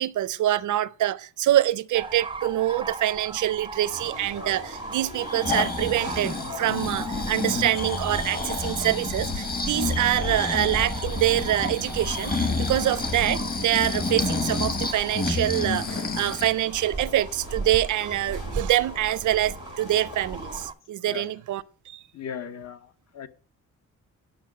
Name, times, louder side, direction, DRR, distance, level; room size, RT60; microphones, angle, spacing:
voice 1, 0.0-22.0, right 13 dB, 75° right, 0.5 m, -25 dB
sound 1, 1.9-20.7, right 3 dB, 15° right, 0.4 m, -38 dB
sound 2, 3.9-20.7, left 3 dB, 75° left, 2.5 m, -41 dB
Breathing, 5.1-16.6 17.0-17.1, left 3 dB, 30° left, 1.2 m, -29 dB
voice 2, 22.1-23.3, left 8 dB, 60° left, 0.8 m, -37 dB
10.5 x 6.2 x 5.9 m
wide cardioid pair, 175°, 31 cm